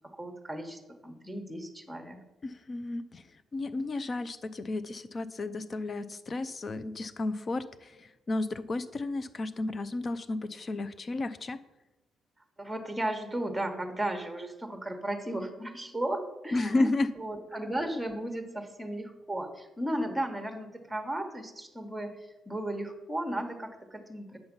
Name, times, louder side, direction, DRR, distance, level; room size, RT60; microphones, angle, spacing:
voice 1, 0.1-2.2 12.6-16.9 17.2-22.2 22.5-24.4, right 1 dB, 5° right, 5 dB, 1.2 m, -35 dB
voice 2, 2.4-3.2 3.5-11.6 16.5-17.1, left 2 dB, 40° left, 13 dB, 0.6 m, -32 dB
8.0 x 5.6 x 5.3 m, 1.0 s
cardioid pair, 90°, 0 cm